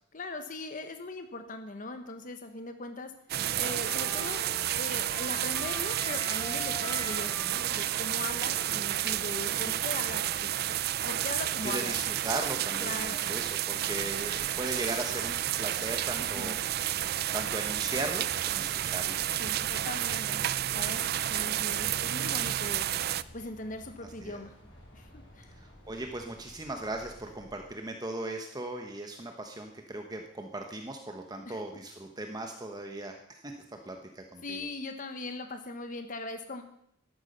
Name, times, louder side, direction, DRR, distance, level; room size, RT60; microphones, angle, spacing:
voice 1, 0.1-3.1 3.5-4.4 4.8-12.0 12.8-13.3 16.2-16.5 19.4-20.4 20.7-22.9 23.3-24.5 24.9-25.5 31.4-31.6 34.4-36.6, left 2 dB, 45° left, 7 dB, 1.2 m, -40 dB
Trumpet, 3.3-9.9, left 2 dB, 20° left, 2.1 m, -45 dB
sound 1, 3.3-23.2, right 12 dB, 55° right, 0.4 m, -31 dB
voice 2, 11.6-17.0 17.3-19.2 24.0-24.4 25.6-34.7, right 2 dB, 20° right, 4 dB, 1.1 m, -38 dB
sound 2, 13.8-27.7, equal, 70° left, 5.0 m, -54 dB
13.0 x 11.5 x 5.4 m, 0.70 s
head